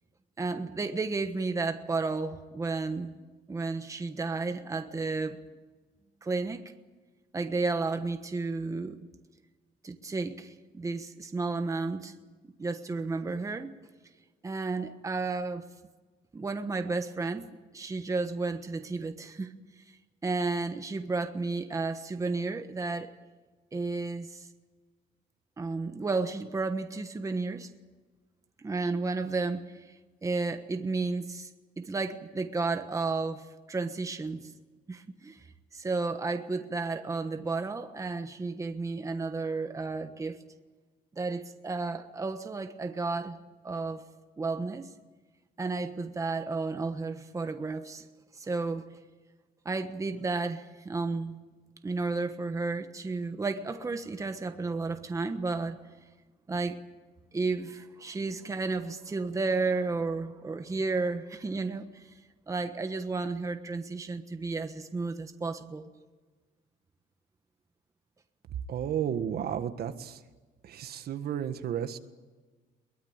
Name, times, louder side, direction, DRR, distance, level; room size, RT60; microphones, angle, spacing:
voice 1, 0.4-3.2 3.5-5.4 6.2-6.6 7.3-9.0 9.8-12.1 12.6-13.7 14.4-15.6 16.3-17.5 17.7-19.5 20.2-23.1 23.7-24.5 25.6-27.7 28.6-29.9 30.2-31.5 31.8-34.5 34.9-35.5 35.7-40.4 41.2-43.4 43.6-44.0 44.4-44.9 45.6-48.0 48.3-48.8 49.6-51.4 51.8-55.8 56.5-56.8 57.3-62.1 62.5-65.9, right 3 dB, 20° right, 7 dB, 1.2 m, -32 dB
voice 2, 68.7-70.2 70.6-72.0, right 9 dB, 65° right, 9 dB, 1.6 m, -32 dB
22.5 x 20.5 x 8.9 m, 1.3 s
cardioid pair, 160°, 17 cm